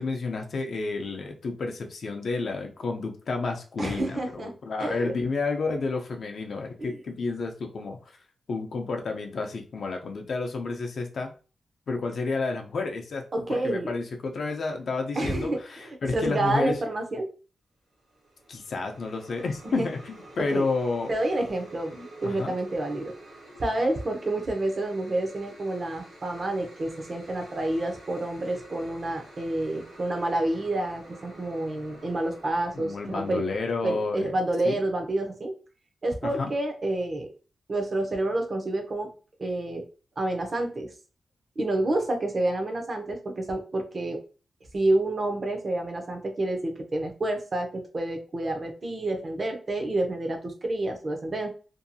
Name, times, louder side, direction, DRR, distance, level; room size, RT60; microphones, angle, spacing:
voice 1, 0.0-8.2 8.5-11.3 11.9-16.7 18.5-21.1 22.2-22.5 32.7-34.3 34.6-34.8 36.2-36.5, left 3 dB, 55° left, 3 dB, 0.5 m, -30 dB
voice 2, 3.8-4.5 4.8-5.1 6.8-6.9 13.3-13.9 15.2-17.3 19.6-19.9 20.5-20.7 21.1-23.1 23.6-33.4 33.8-35.6 36.0-37.3 37.7-39.1 39.4-39.8 40.2-40.9 41.6-44.2 44.7-51.5, right 1 dB, 35° right, 4 dB, 0.5 m, -29 dB
sound 1, 17.9-34.4, right 1 dB, 60° right, 0.9 m, -49 dB
2.6 x 2.3 x 2.6 m, 0.36 s
wide cardioid pair, 155°, 0 cm